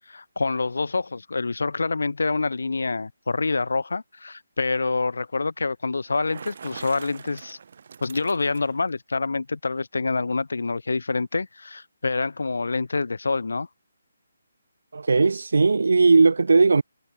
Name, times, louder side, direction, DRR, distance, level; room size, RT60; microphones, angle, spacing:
voice 1, 0.1-7.6 8.0-13.7, left 3 dB, 85° left, 3.4 m, -26 dB
Bicycle, 6.0-8.9, right 6 dB, 45° right, 4.4 m, -43 dB
voice 2, 14.9-16.8, right 4 dB, 75° right, 0.6 m, -18 dB
hypercardioid pair, 170°, 0 cm